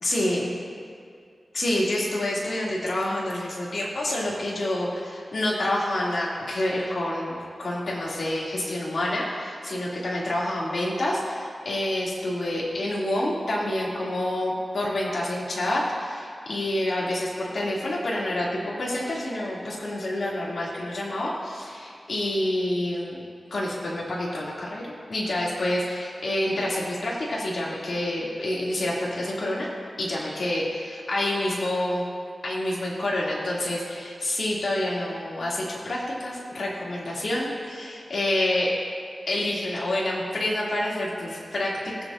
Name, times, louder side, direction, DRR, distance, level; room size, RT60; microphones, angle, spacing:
voice 1, 0.0-0.5 1.5-23.2 23.5-29.7 30.0-32.0 32.4-38.7 39.3-42.1, left 1 dB, 75° left, -5 dB, 2.4 m, -28 dB
19.5 x 8.1 x 2.5 m, 2.3 s
wide cardioid pair, 85°, 0 cm